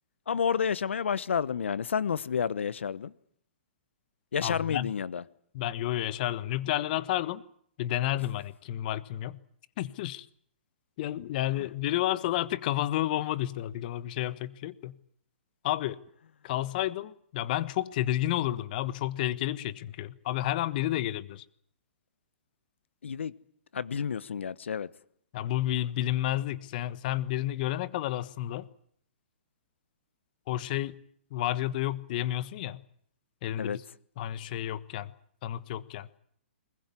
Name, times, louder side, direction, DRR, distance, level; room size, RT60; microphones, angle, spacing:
voice 1, 0.3-3.1 4.3-5.2 23.0-23.3 23.7-24.9 33.6-33.8, left 7 dB, 80° left, 1.1 m, -30 dB
voice 2, 4.4-4.9 5.5-7.4 7.8-9.4 9.8-10.3 11.0-15.0 15.6-16.0 16.4-21.4 25.3-28.7 30.5-31.0 31.3-32.8 33.4-33.8 34.2-35.1 35.4-36.1, left 14 dB, 45° left, 1.3 m, -31 dB
22.0 x 20.5 x 9.8 m
hypercardioid pair, 135°, 6 cm